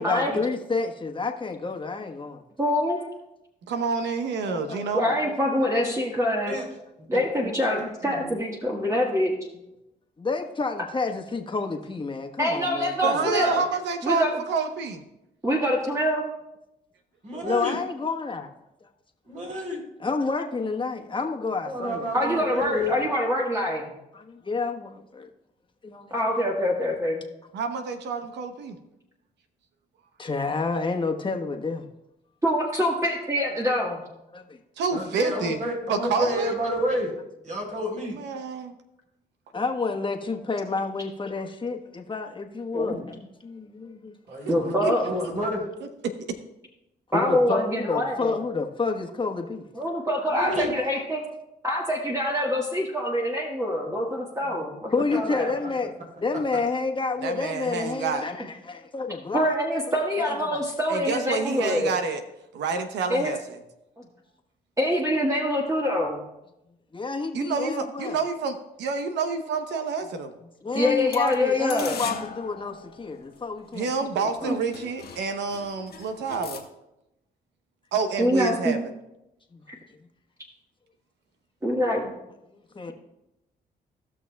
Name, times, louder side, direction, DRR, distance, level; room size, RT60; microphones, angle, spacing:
voice 1, 0.0-2.4 4.4-5.3 10.2-13.5 17.4-18.5 18.8-18.9 20.0-22.1 24.1-25.3 25.8-26.1 30.2-31.8 34.3-34.6 35.8-35.9 39.5-44.2 47.1-49.7 54.5-54.6 54.9-55.9 56.2-59.5 59.9-60.0 60.3-60.6 66.9-68.2 70.6-73.9 74.1-74.6 82.5-82.9, left 4 dB, 30° left, 3 dB, 1.3 m, -29 dB
voice 2, 2.6-3.0 4.9-6.6 7.1-9.4 12.4-13.6 14.0-14.3 15.4-16.3 22.1-24.0 26.1-27.2 32.4-34.0 42.7-43.0 44.5-45.1 47.1-48.3 49.7-51.2 51.6-55.5 58.4-58.5 59.3-61.9 63.1-63.3 64.0-64.1 64.8-66.2 70.7-72.0 74.4-74.6 78.2-78.8 79.7-79.8 81.6-82.1, left 1 dB, 20° right, -2 dB, 1.5 m, -25 dB
voice 3, 3.7-5.1 13.0-15.0 27.5-28.8 34.8-35.6 35.9-36.5 38.1-38.7 44.5-44.9 57.2-58.3 60.9-62.2 62.5-63.6 67.3-70.3 73.7-76.6 77.9-78.8, right 5 dB, 85° right, 7 dB, 0.9 m, -28 dB
voice 4, 7.8-8.3 17.2-17.8 19.3-19.8 21.7-22.9 34.9-37.1 37.4-38.1 44.3-45.6 50.3-50.7, equal, 45° right, -1 dB, 3.6 m, -29 dB
sound 1, 71.1-73.7 74.4-74.5 74.7-76.6, left 6 dB, 65° left, 1.3 m, -40 dB
16.5 x 6.1 x 2.3 m, 0.89 s
supercardioid pair, 55°, 18 cm